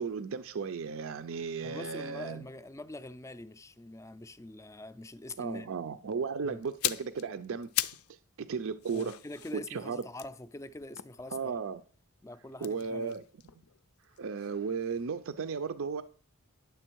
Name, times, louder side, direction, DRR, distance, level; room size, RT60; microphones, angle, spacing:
voice 1, 0.0-2.4 5.4-7.7 8.4-9.1 9.7-10.0 11.3-11.8 12.6-13.2 14.2-16.0, right 5 dB, 65° right, 0.5 m, -35 dB
voice 2, 1.6-5.7 6.4-6.6 8.9-11.5 12.2-13.2, left 2 dB, 15° left, 0.4 m, -44 dB
sound 1, 6.6-8.1 8.4-11.7 12.5-14.6 14.8-15.0, left 13 dB, 80° left, 0.5 m, -38 dB
9.9 x 7.0 x 4.5 m
head